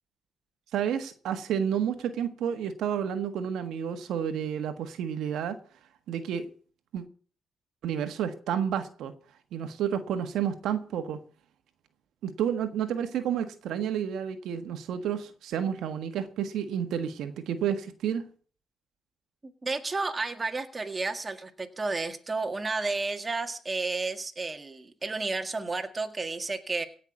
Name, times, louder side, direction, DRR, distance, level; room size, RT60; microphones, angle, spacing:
voice 1, 0.7-5.6 6.1-6.5 6.9-7.0 7.8-9.1 9.5-11.2 12.2-18.3, right 8 dB, 80° right, 1.5 m, -30 dB
voice 2, 19.4-26.9, right 3 dB, 25° right, 1.9 m, -32 dB
17.0 x 5.9 x 8.3 m
cardioid pair, 90°, 0 cm